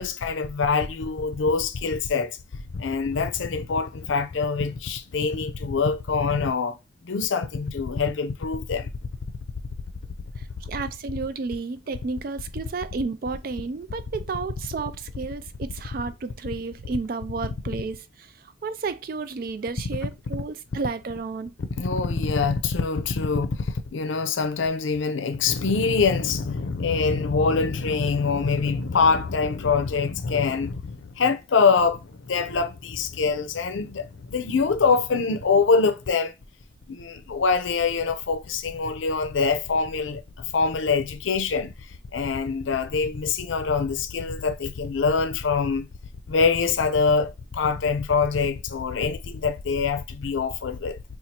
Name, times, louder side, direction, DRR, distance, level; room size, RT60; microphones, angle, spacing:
voice 1, 0.0-2.4 2.7-6.8 7.0-8.9 21.8-36.3 36.9-41.7 42.1-45.9 46.3-51.0, left 5 dB, 80° left, 0.5 m, -24 dB
voice 2, 10.4-21.5, right 4 dB, 45° right, 0.3 m, -32 dB
4.1 x 2.4 x 2.8 m
head